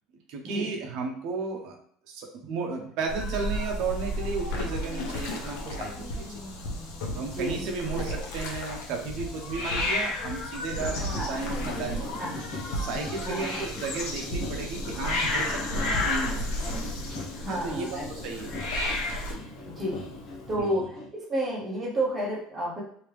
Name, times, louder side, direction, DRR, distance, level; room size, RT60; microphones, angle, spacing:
voice 1, 0.3-1.8 2.1-6.4 7.1-12.3 12.7-16.5 17.5-18.6 20.6-20.8, right 4 dB, 60° right, 2 dB, 0.7 m, -34 dB
sound 1, 3.1-19.3, equal, 85° left, 0.8 m, -35 dB
Hiss, 3.2-20.5, left 2 dB, 65° left, 1.4 m, -35 dB
voice 2, 7.1-7.7 8.0-8.1 11.1-11.4 12.2-12.4 13.2-13.5 17.3-18.0 19.7-20.0 20.5-22.8, right 1 dB, 20° right, -4 dB, 1.0 m, -31 dB
sound 2, 10.7-21.1, left 2 dB, 40° left, 0.8 m, -41 dB
3.2 x 2.8 x 3.2 m, 0.63 s
cardioid pair, 155°, 0 cm